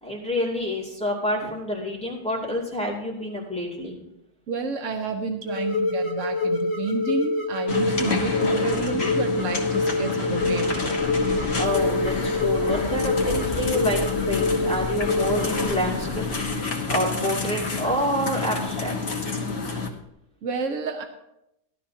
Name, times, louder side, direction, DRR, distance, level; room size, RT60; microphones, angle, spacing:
voice 1, 0.0-4.0 11.6-16.3 16.9-18.9, left 1 dB, 5° left, -5 dB, 2.5 m, -28 dB
voice 2, 4.5-11.5 20.4-21.0, right 5 dB, 85° right, 5 dB, 1.2 m, -30 dB
sound 1, 5.5-15.7, left 3 dB, 85° left, 1.8 m, -26 dB
sound 2, 7.7-19.9, left 4 dB, 55° left, 1.5 m, -28 dB
sound 3, 11.0-16.5, left 2 dB, 20° right, 3.9 m, -39 dB
15.5 x 11.5 x 2.8 m, 0.85 s
omnidirectional pair, 1.3 m